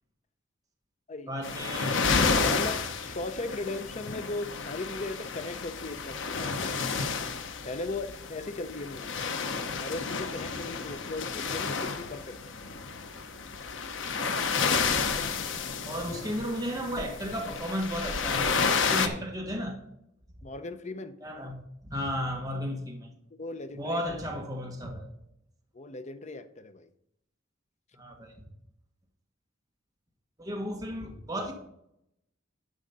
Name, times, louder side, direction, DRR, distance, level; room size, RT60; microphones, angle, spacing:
voice 1, 1.3-2.3 15.8-19.8 21.2-21.6 21.8-23.1 23.7-25.1 27.9-28.4 30.4-31.5, equal, 20° right, 1.6 m, -34 dB
sound 1, 1.4-19.1, left 5 dB, 80° left, 0.9 m, -31 dB
voice 2, 2.5-7.0 7.6-9.1 9.8-12.5 20.4-21.2 23.4-24.0 25.7-26.9, left 2 dB, 40° left, 0.7 m, -37 dB
11.5 x 5.0 x 5.4 m
head